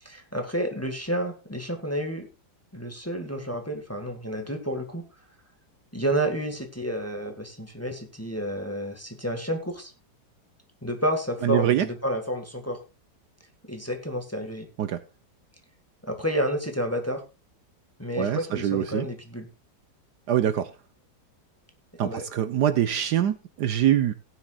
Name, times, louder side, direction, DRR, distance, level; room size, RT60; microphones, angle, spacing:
voice 1, 0.0-2.3 2.7-5.0 5.9-9.9 10.8-12.8 13.7-14.7 16.0-17.2 18.0-19.5 22.0-22.2, equal, 10° left, 4 dB, 1.7 m, -30 dB
voice 2, 11.4-11.9 14.8-15.0 18.2-19.1 20.3-20.7 22.0-24.1, right 11 dB, 65° right, 11 dB, 1.3 m, -24 dB
18.0 x 9.7 x 2.4 m, 0.26 s
omnidirectional pair, 2.0 m